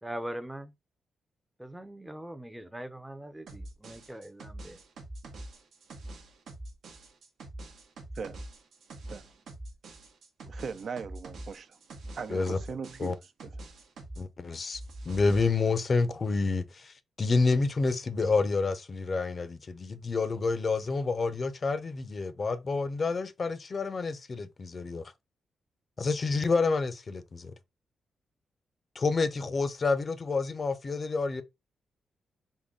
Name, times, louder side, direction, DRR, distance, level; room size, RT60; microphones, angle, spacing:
voice 1, 0.0-0.7 1.6-4.7, right 1 dB, 10° right, 0.5 m, -41 dB
sound 1, 3.5-14.3 14.5-15.5, right 1 dB, 80° right, 0.8 m, -44 dB
voice 2, 10.5-11.8 12.2-13.2, right 5 dB, 60° right, 0.4 m, -38 dB
voice 3, 14.2-14.8 15.1-25.0 26.0-27.5 28.9-31.4, left 4 dB, 45° left, 0.5 m, -28 dB
3.7 x 2.1 x 3.6 m
cardioid pair, 75°, 0 cm